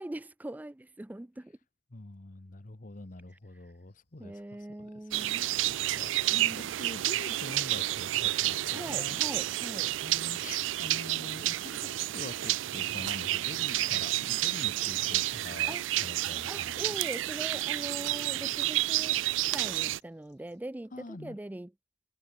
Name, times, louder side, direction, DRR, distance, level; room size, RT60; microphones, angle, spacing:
voice 1, 0.0-1.6 4.2-5.5 6.3-6.7 8.7-9.9 15.7-15.8 16.5-19.2 19.5-21.7, right 1 dB, 10° right, 0.4 m, -41 dB
voice 2, 1.9-9.2 10.0-16.8 20.9-21.4, left 2 dB, 45° left, 1.1 m, -45 dB
sound 1, 2.9-20.7, left 6 dB, 65° left, 7.4 m, -75 dB
sound 2, 5.1-20.0, right 15 dB, 90° right, 0.4 m, -30 dB
head